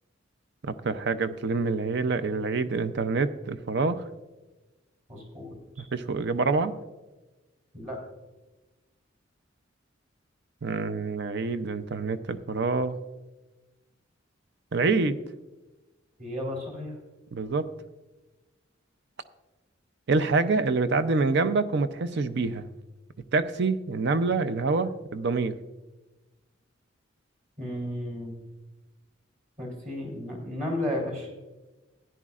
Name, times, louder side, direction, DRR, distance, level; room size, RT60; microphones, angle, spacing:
voice 1, 0.6-4.0 5.9-6.7 10.6-12.9 14.7-15.2 17.3-17.7 20.1-22.7 23.3-25.6, right 4 dB, 60° right, 12 dB, 0.5 m, -26 dB
voice 2, 5.1-5.6 7.7-8.0 16.2-17.0 27.6-28.4 29.6-31.3, left 1 dB, 40° right, 0 dB, 3.4 m, -33 dB
15.0 x 10.0 x 2.4 m, 1.1 s
head